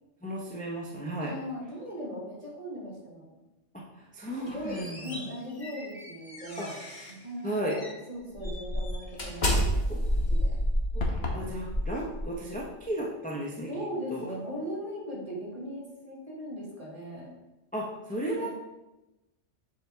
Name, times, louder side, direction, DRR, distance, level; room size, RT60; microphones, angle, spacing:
voice 1, 0.2-1.3 4.0-5.2 6.6-6.7 7.4-7.8 9.9-10.1 10.9-11.0 11.3-13.7 14.1-14.3 17.7-18.5, right 1 dB, 10° left, -3 dB, 0.7 m, -34 dB
voice 2, 1.2-3.4 4.3-9.6 10.1-10.6 13.7-17.3 18.4-18.5, equal, 30° right, -5 dB, 2.0 m, -39 dB
sound 1, 4.3-7.2 7.7-7.9 8.4-12.6, equal, 40° left, 1.2 m, -30 dB
sound 2, 11.0-11.5, left 3 dB, 65° left, 1.2 m, -31 dB
7.2 x 4.8 x 3.4 m, 1.0 s
omnidirectional pair, 1.2 m